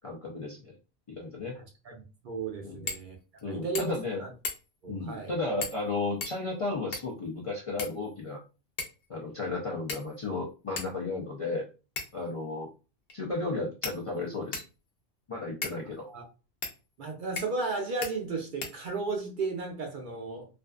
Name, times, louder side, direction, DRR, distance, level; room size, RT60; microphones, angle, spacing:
voice 1, 0.0-0.7 1.1-1.6 2.6-2.9 3.4-4.2 4.9-8.4 9.1-11.7 12.1-12.7 13.1-14.6 15.3-16.1, left 3 dB, 45° left, 0.4 m, -34 dB
voice 2, 2.2-3.2 3.5-4.3 4.8-5.3 16.1-16.2 17.0-20.5, right 3 dB, 60° right, 0.6 m, -34 dB
sound 1, 2.9-3.1 3.4-3.5 3.7-4.1 4.4-4.8 5.6-5.9 6.2-7.2 7.8-8.4 8.8-9.1 9.9-10.3 10.8-10.9 12.0-12.3 13.1-13.2 13.8-14.8 15.6-15.8 16.6-16.8 17.4-17.7 18.0-18.1 18.6-19.2, left 4 dB, 65° left, 0.8 m, -38 dB
2.5 x 2.3 x 2.3 m
omnidirectional pair, 1.1 m